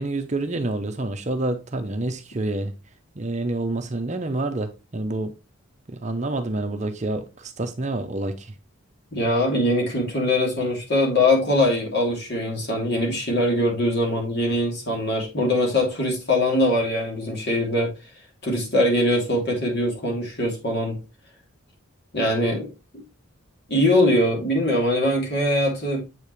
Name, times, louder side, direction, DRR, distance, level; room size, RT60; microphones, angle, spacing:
voice 1, 0.0-2.7 3.2-5.3 5.9-8.5, right 2 dB, 35° right, 0.7 m, -28 dB
voice 2, 9.1-17.9 18.4-21.0 22.1-22.7 23.7-26.0, left 1 dB, 50° left, 2.8 m, -22 dB
7.7 x 5.3 x 3.2 m
head